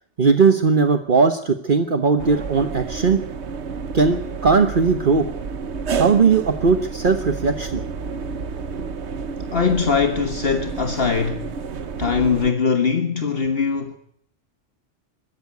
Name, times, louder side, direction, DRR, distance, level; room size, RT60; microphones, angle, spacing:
voice 1, 0.2-3.2 3.9-5.3 5.9-7.8, right 5 dB, 50° right, 1.3 m, -18 dB
sound 1, 2.2-12.5, right 5 dB, 85° right, 1.3 m, -30 dB
voice 2, 9.5-11.4 12.0-14.0, left 5 dB, 60° left, 1.6 m, -21 dB
22.0 x 13.5 x 9.5 m
omnidirectional pair, 1.1 m